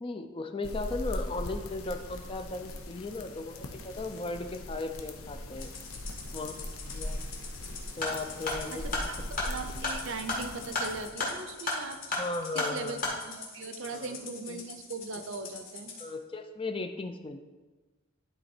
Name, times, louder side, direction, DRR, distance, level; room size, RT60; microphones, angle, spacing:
voice 1, 0.0-5.7 6.3-6.6 6.9-7.2 8.0-9.1 12.2-13.0 13.9-14.2 14.5-14.6 16.0-17.4, left 3 dB, 25° left, 7 dB, 0.4 m, -36 dB
sound 1, 0.6-11.1, left 1 dB, 90° left, 0.8 m, -40 dB
Rattle (instrument), 5.6-16.1, left 5 dB, 70° left, 1.6 m, -45 dB
sound 2, 8.0-13.2, left 2 dB, 40° left, 1.7 m, -34 dB
voice 2, 8.7-9.1 9.4-12.2 12.5-13.0 13.3-15.9, right 3 dB, 60° right, 8 dB, 0.7 m, -39 dB
11.5 x 4.0 x 4.4 m, 1.2 s
head